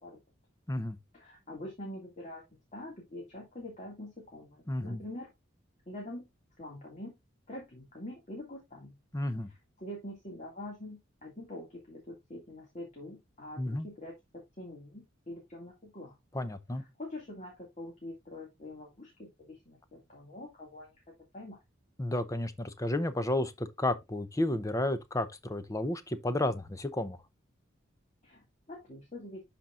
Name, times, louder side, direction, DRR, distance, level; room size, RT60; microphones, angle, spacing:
voice 1, 1.1-5.3 5.9-6.3 6.6-7.1 7.5-9.0 9.8-16.2 16.7-21.0 21.3-21.6 28.2-29.4, left 1 dB, 35° left, 2.2 m, -45 dB
voice 2, 4.7-5.0 9.1-9.5 13.6-13.9 16.3-16.8 22.0-27.2, left 1 dB, 15° left, 0.7 m, -32 dB
11.5 x 4.4 x 2.4 m
head